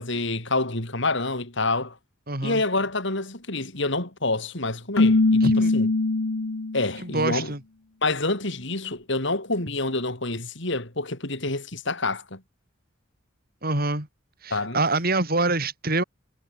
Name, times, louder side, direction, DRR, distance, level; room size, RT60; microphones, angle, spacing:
voice 1, 0.0-2.0 2.4-5.5 5.7-5.9 6.7-7.5 8.0-12.4 14.5-14.8, left 2 dB, 60° left, 4.8 m, -27 dB
voice 2, 2.3-2.6 5.4-5.7 7.0-7.6 13.6-14.1 14.4-16.0, right 2 dB, 45° right, 7.7 m, -25 dB
Keyboard (musical), 5.0-6.9, left 2 dB, 80° left, 1.0 m, -21 dB
head